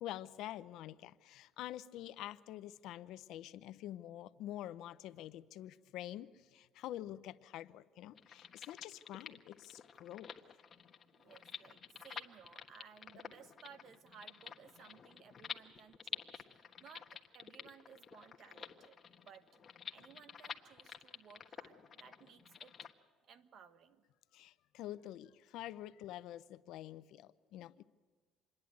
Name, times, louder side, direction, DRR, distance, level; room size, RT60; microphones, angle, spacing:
voice 1, 0.0-10.3 24.3-27.8, left 13 dB, 75° left, 14 dB, 0.7 m, -47 dB
sound 1, 8.1-22.9, left 7 dB, 40° left, 1.3 m, -50 dB
voice 2, 11.1-19.6 19.9-22.7 23.3-24.1, right 7 dB, 55° right, 11 dB, 1.3 m, -59 dB
27.0 x 10.5 x 9.3 m, 1.5 s
cardioid pair, 105°, 0 cm